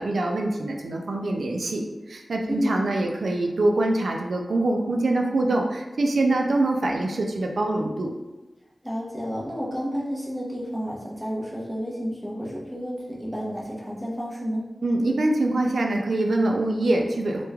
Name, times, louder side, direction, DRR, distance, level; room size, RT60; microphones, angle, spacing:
voice 1, 0.0-8.1 14.8-17.4, right 2 dB, 85° right, 2 dB, 0.3 m, -24 dB
voice 2, 2.5-2.8 8.8-14.7, equal, ahead, -5 dB, 0.7 m, -31 dB
3.0 x 2.2 x 2.2 m, 1.1 s
wide cardioid pair, 75°, 0 cm